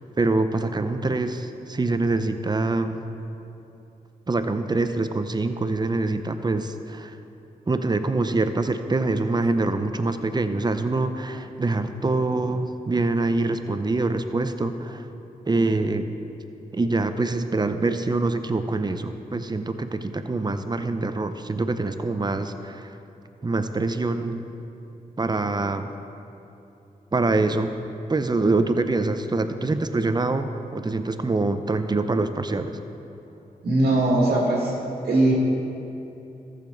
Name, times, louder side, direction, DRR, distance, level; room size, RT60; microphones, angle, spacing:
voice 1, 0.2-3.0 4.3-7.2 7.7-15.0 15.5-16.1 16.7-22.9 23.4-24.4 25.2-25.9 27.1-27.8 28.1-32.7, right 3 dB, 25° right, 8 dB, 0.6 m, -25 dB
voice 2, 33.6-34.7 35.0-35.3, right 2 dB, 85° right, -3 dB, 1.7 m, -20 dB
14.0 x 6.8 x 3.9 m, 2.9 s
cardioid pair, 55°, 16 cm